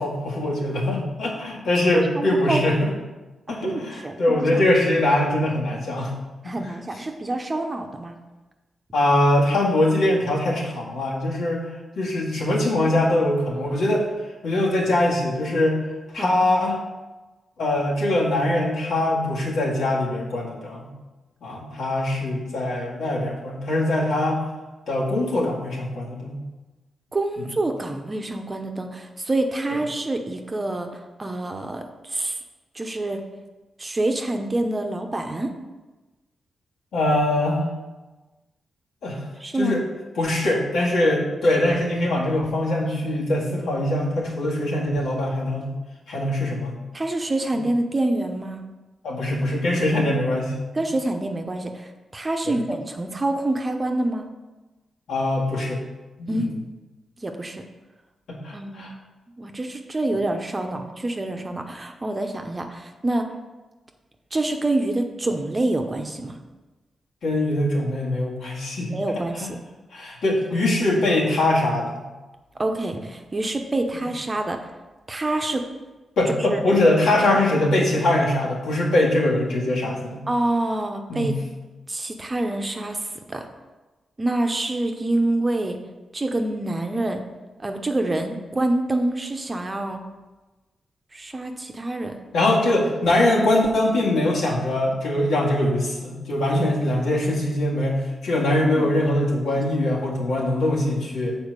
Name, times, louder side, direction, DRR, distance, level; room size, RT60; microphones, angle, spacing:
voice 1, 0.0-2.9 3.5-6.1 6.4-6.5 8.9-11.6 12.0-14.1 14.4-15.8 16.1-16.8 17.6-20.9 21.4-24.4 24.9-26.4 27.4-27.5 36.9-37.7 39.0-39.3 39.5-39.8 40.2-45.7 46.1-46.8 49.0-50.6 52.5-52.6 55.1-55.8 56.2-56.5 58.3-58.9 67.2-68.9 69.4-69.5 69.9-72.0 73.9-74.0 76.2-80.2 81.1-81.3 92.3-101.4, left 1 dB, 85° left, -4 dB, 2.1 m, -22 dB
voice 2, 1.9-2.6 3.6-4.6 6.4-8.2 16.2-16.4 27.1-30.9 31.2-32.4 32.7-33.3 33.8-35.5 39.4-39.8 46.9-48.6 50.7-54.3 56.3-56.6 57.2-57.6 58.5-58.9 59.4-63.3 64.3-66.4 68.9-69.6 72.6-74.6 75.1-75.7 76.4-76.8 80.3-81.4 81.9-83.4 84.2-85.8 86.1-87.2 87.6-90.0 91.1-92.2 98.8-98.9 99.5-99.6, right 2 dB, 25° right, 4 dB, 0.8 m, -26 dB
7.1 x 4.4 x 6.7 m, 1.2 s
cardioid pair, 100°, 0 cm